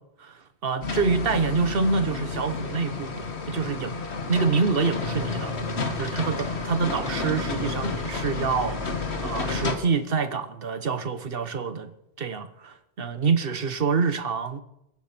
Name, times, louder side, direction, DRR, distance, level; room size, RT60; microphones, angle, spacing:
voice 1, 0.2-4.0 4.3-5.5 6.0-11.9 12.2-14.6, right 5 dB, 60° right, 1.3 m, -26 dB
sound 1, 0.8-9.8, left 4 dB, 85° left, 1.9 m, -31 dB
sound 2, 4.8-10.3, equal, 30° right, 3.4 m, -40 dB
22.5 x 9.5 x 6.0 m
omnidirectional pair, 1.1 m